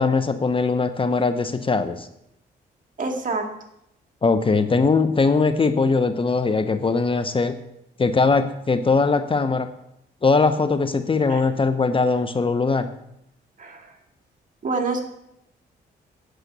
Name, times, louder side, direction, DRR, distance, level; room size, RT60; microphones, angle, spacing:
voice 1, 0.0-2.1 4.2-7.5 8.0-9.7 10.2-12.9, left 4 dB, 30° left, 10 dB, 0.8 m, -20 dB
voice 2, 3.0-3.4 11.3-11.4 13.6-13.9 14.6-15.0, right 3 dB, 45° right, 3 dB, 2.1 m, -26 dB
8.4 x 6.5 x 8.0 m, 0.79 s
cardioid pair, 80°, 18 cm